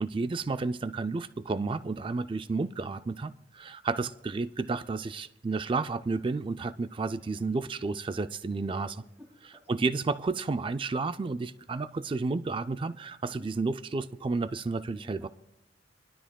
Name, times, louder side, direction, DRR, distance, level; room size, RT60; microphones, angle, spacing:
voice 1, 0.0-8.9 9.7-15.3, right 3 dB, 25° right, 0.3 m, -31 dB
voice 2, 8.7-9.7 13.2-13.5 15.0-15.3, left 2 dB, 10° right, 2.1 m, -52 dB
22.5 x 12.5 x 2.3 m
head